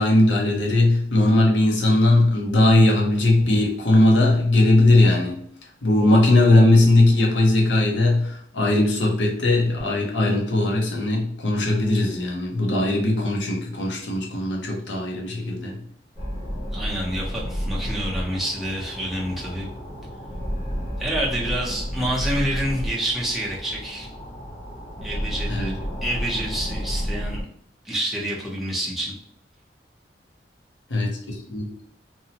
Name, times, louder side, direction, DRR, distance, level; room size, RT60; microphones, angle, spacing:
voice 1, 0.0-5.4 5.8-15.8 25.5-25.7 30.9-31.7, left 2 dB, 85° left, -1 dB, 0.7 m, -19 dB
sound 1, 16.2-27.4, equal, 35° left, 0.7 m, -31 dB
voice 2, 16.7-19.7 21.0-24.1 25.0-27.4 27.8-29.1, right 1 dB, ahead, -4 dB, 0.5 m, -28 dB
2.7 x 2.0 x 2.7 m, 0.67 s
head